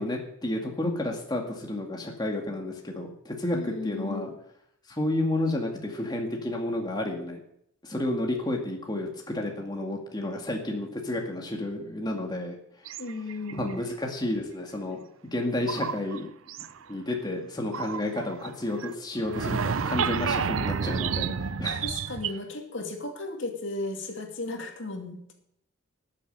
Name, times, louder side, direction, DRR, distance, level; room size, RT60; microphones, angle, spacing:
voice 1, 0.0-4.3 4.9-7.4 7.8-12.6 13.5-15.0 15.3-16.3 16.9-21.8, left 1 dB, 20° left, 1 dB, 2.0 m, -31 dB
voice 2, 3.5-4.3 13.0-13.8 20.3-20.6 21.8-25.3, left 2 dB, 65° left, 3 dB, 2.5 m, -35 dB
sound 1, 12.9-13.7 15.7-16.2 16.5-16.8 17.7-18.5 18.8-18.9 19.2-22.3, right 6 dB, 85° right, 0.6 m, -30 dB
13.5 x 7.4 x 9.0 m, 0.72 s
head